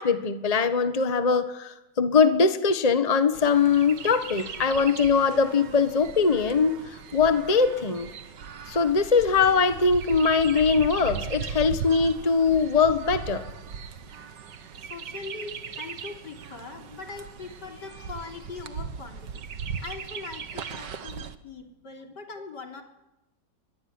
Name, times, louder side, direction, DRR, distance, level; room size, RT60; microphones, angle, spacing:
voice 1, 0.0-8.1 8.7-13.4, left 5 dB, 25° left, 10 dB, 1.4 m, -22 dB
Chirp tweet, 3.3-21.4, right 6 dB, 90° right, 2.1 m, -38 dB
voice 2, 14.8-22.8, left 4 dB, 80° left, 4 dB, 4.0 m, -41 dB
23.0 x 20.5 x 9.7 m, 0.93 s
omnidirectional pair, 1.8 m